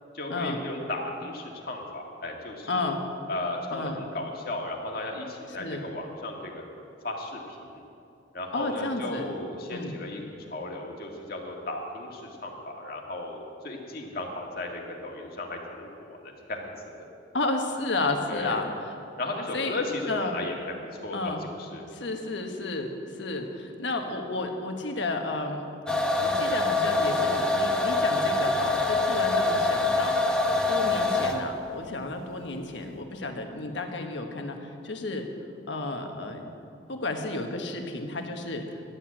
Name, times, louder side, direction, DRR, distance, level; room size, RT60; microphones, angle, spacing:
voice 1, 0.1-2.8 3.3-6.6 7.0-7.8 8.3-16.7 18.3-18.6 19.2-20.7 21.0-21.3 21.6-21.8, left 2 dB, 55° left, 0 dB, 1.8 m, -35 dB
voice 2, 2.7-3.0 3.7-4.0 5.6-5.8 8.5-9.3 9.7-10.0 17.3-19.0 19.5-19.8 20.1-20.4 21.1-21.4 21.9-22.9 23.2-25.7 26.2-30.2 30.7-35.2 35.7-36.4 36.9-38.8, left 2 dB, 75° left, 4 dB, 1.3 m, -32 dB
sound 1, 25.9-31.5, left 2 dB, 5° left, 0.9 m, -25 dB
12.0 x 8.9 x 8.5 m, 2.6 s
head